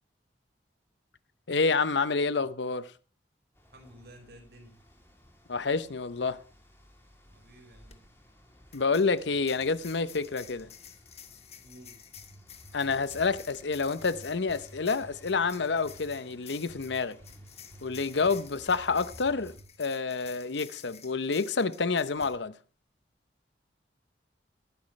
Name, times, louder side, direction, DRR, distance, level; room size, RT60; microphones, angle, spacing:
voice 1, 1.5-2.9 5.5-6.4 8.7-10.7 12.7-17.2 17.8-22.5, left 4 dB, 80° left, 0.8 m, -28 dB
sound 1, 3.5-19.6, left 1 dB, 15° left, 2.9 m, -57 dB
voice 2, 3.7-4.8 7.3-8.0 11.6-12.0 18.1-18.4, right 1 dB, 60° right, 4.8 m, -52 dB
sound 2, 7.9-8.0 8.7-22.4, left 8 dB, 35° left, 1.3 m, -51 dB
sound 3, 12.1-13.4 14.0-15.4 15.8-16.2 16.7-18.8 19.1-19.7, right 1 dB, 40° right, 1.2 m, -52 dB
19.0 x 10.5 x 3.2 m
head